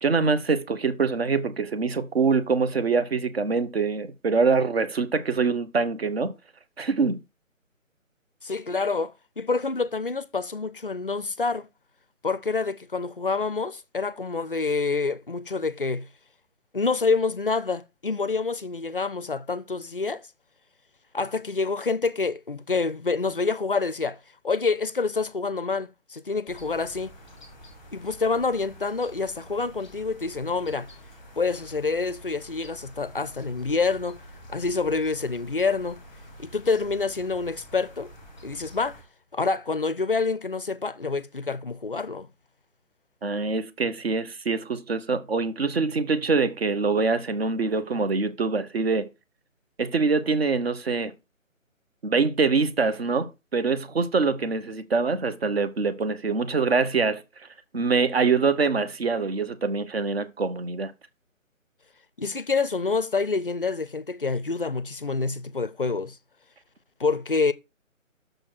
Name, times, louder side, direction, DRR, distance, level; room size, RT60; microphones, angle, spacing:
voice 1, 0.0-6.3 6.8-7.2 43.2-49.1 49.8-51.1 52.0-57.2 57.7-60.9, right 4 dB, 50° right, 1.0 m, -24 dB
voice 2, 8.4-11.7 12.2-16.1 16.7-20.3 21.1-24.2 24.4-27.2 27.9-30.9 31.4-34.2 34.5-36.0 36.4-38.1 38.4-39.0 39.3-42.3 62.2-66.2 67.0-67.5, left 4 dB, 45° left, 0.4 m, -27 dB
sound 1, 26.5-39.0, equal, ahead, 1.0 m, -48 dB
6.5 x 4.2 x 6.2 m
figure-of-eight pair, 160°, 40 cm